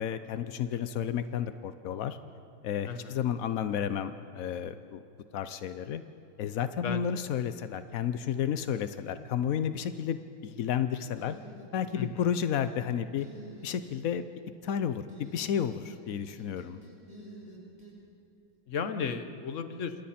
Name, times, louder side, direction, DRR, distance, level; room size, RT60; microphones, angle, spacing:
voice 1, 0.0-2.2 2.6-5.0 5.3-6.0 6.4-11.4 11.7-13.3 13.6-14.2 14.6-16.8, left 8 dB, 75° left, 11 dB, 0.7 m, -32 dB
voice 2, 2.9-3.2 6.8-7.1 11.9-12.3 18.7-19.9, left 6 dB, 45° left, 9 dB, 1.2 m, -34 dB
sound 1, 11.2-12.1 12.4-12.8 13.2-14.0 15.1-16.0 16.3-17.9, right 2 dB, 20° right, 6.5 m, -49 dB
28.0 x 27.5 x 4.3 m, 2.7 s
omnidirectional pair, 2.3 m